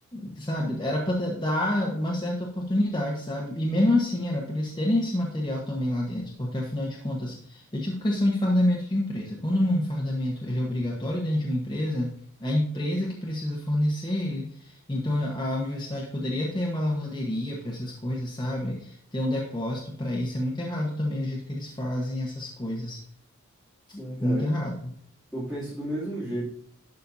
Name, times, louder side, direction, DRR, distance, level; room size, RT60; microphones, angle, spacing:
voice 1, 0.1-12.1 12.4-23.0 23.9-24.9, left 1 dB, 20° left, -2 dB, 1.2 m, -28 dB
voice 2, 24.0-24.5 25.3-26.4, right 1 dB, ahead, -10 dB, 2.7 m, -33 dB
11.5 x 5.6 x 2.7 m, 0.65 s
head